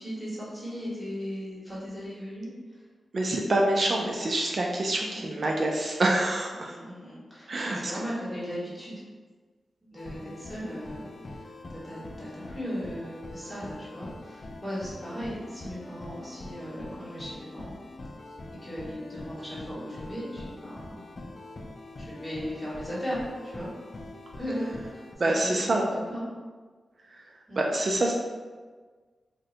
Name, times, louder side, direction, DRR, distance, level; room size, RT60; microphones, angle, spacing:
voice 1, 0.0-2.8 5.0-5.3 6.5-9.0 9.8-17.7 18.6-21.0 22.0-23.2 23.4-23.7 24.4-26.3 27.5-27.7, equal, 10° left, -9 dB, 1.5 m, -37 dB
voice 2, 3.1-6.8 7.5-7.9 25.2-25.9 27.1-27.2 27.6-28.1, right 1 dB, 55° right, 0 dB, 0.3 m, -26 dB
sound 1, 10.0-25.2, left 2 dB, 50° left, 0.4 m, -44 dB
2.6 x 2.1 x 3.8 m, 1.4 s
cardioid pair, 70°, 0 cm